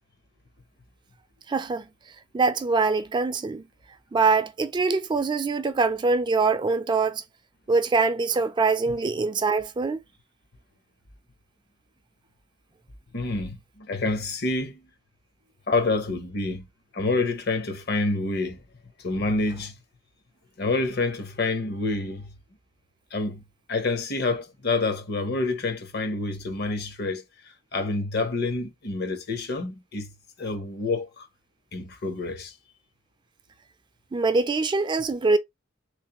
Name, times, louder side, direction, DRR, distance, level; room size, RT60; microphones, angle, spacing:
voice 1, 1.5-1.8 2.3-3.6 4.1-7.2 7.7-10.0 34.1-35.4, right 4 dB, 25° right, 0.3 m, -23 dB
voice 2, 13.1-14.8 15.7-16.7 16.9-18.6 19.0-19.7 20.6-22.3 23.1-23.4 23.7-27.2 27.7-30.1 30.4-31.3 31.7-32.5, left 3 dB, 60° left, 0.9 m, -27 dB
3.4 x 3.2 x 2.9 m
head